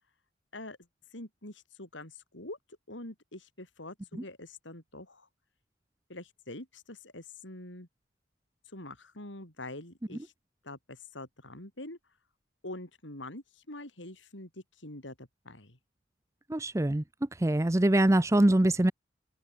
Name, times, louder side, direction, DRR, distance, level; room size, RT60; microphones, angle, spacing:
voice 1, 1.1-2.6 2.9-5.3 6.1-7.9 8.7-10.3 10.6-12.0 12.6-15.8, left 1 dB, 85° left, 7.6 m, -45 dB
voice 2, 16.5-17.0 17.4-18.9, right 1 dB, 15° right, 0.6 m, -23 dB
open air
head